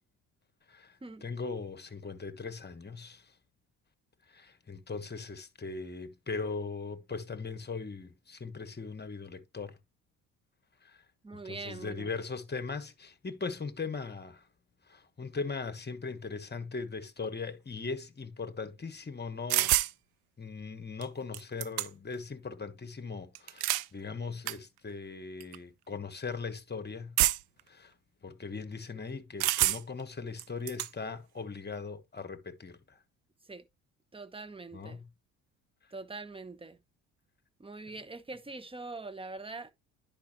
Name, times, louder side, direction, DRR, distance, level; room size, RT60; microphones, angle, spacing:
voice 1, 0.7-3.2 4.3-9.8 10.8-11.0 11.4-14.4 14.9-19.7 20.4-27.2 27.7-27.9 28.2-33.0 34.7-35.1, left 4 dB, 25° left, 1.3 m, -39 dB
voice 2, 11.2-12.1 33.5-33.6 34.1-35.0 35.9-36.8 37.6-39.7, right 3 dB, 15° right, 1.0 m, -43 dB
sound 1, 19.5-19.9 21.0-21.1 21.3-22.1 23.3-23.9 24.5-24.6 25.4-25.6 27.2-27.6 29.4-30.0 30.4-30.9, right 16 dB, 65° right, 0.6 m, -27 dB
10.5 x 5.3 x 3.0 m
hypercardioid pair, 55°, 40 cm